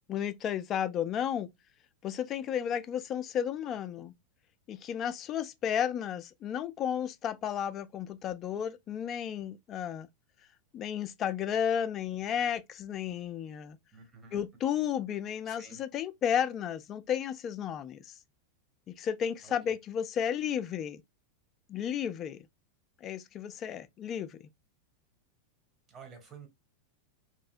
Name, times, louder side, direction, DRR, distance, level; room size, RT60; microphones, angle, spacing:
voice 1, 0.1-1.5 2.0-4.1 4.7-10.1 10.7-13.8 14.3-18.2 19.0-21.0 21.7-22.5 23.0-24.4, left 9 dB, 30° left, 0.3 m, -33 dB
voice 2, 13.9-14.4 15.5-15.8 19.7-19.8 25.9-26.5, right 5 dB, 25° right, 1.0 m, -50 dB
3.1 x 2.7 x 2.3 m
figure-of-eight pair, 90°, 0 cm